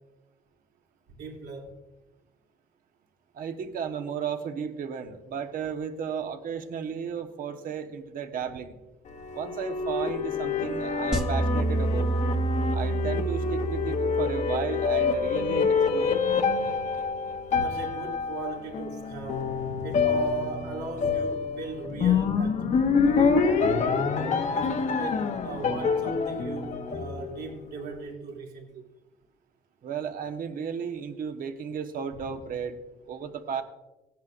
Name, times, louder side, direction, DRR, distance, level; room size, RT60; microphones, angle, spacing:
voice 1, 1.2-1.8 17.6-22.7 23.0-24.0 24.5-28.8, right 4 dB, 75° right, 2.8 m, -38 dB
voice 2, 3.3-8.8 9.3-12.1 12.7-16.2 29.8-32.8 33.1-33.6, right 7 dB, 55° right, 1.2 m, -34 dB
sound 1, 9.1-27.6, left 5 dB, 45° left, 1.0 m, -27 dB
sound 2, 11.1-15.4, right 3 dB, 5° right, 1.2 m, -29 dB
17.0 x 10.5 x 2.6 m
cardioid pair, 110°, 17 cm